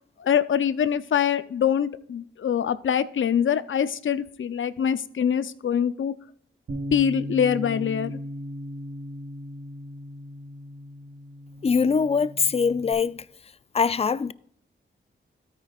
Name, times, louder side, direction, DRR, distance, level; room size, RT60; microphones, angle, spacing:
voice 1, 0.2-6.1 6.9-8.2, left 8 dB, 65° left, 0.6 m, -24 dB
Bass guitar, 6.7-12.9, equal, 75° right, 3.4 m, -37 dB
voice 2, 11.6-13.2 13.7-14.3, left 5 dB, 30° left, 0.4 m, -22 dB
13.0 x 9.2 x 2.5 m
cardioid pair, 65°, 21 cm